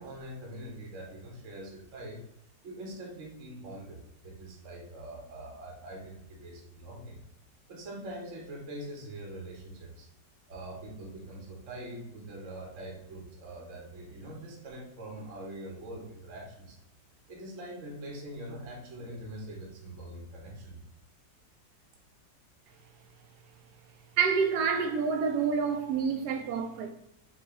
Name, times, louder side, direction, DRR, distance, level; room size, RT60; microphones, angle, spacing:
voice 1, 0.0-2.2 2.6-7.2 7.7-10.1 10.5-16.8 17.3-20.8, right 1 dB, 50° right, 1.1 m, -43 dB
voice 2, 24.2-26.9, right 6 dB, 70° right, 1.1 m, -28 dB
4.9 x 2.4 x 3.5 m
omnidirectional pair, 2.0 m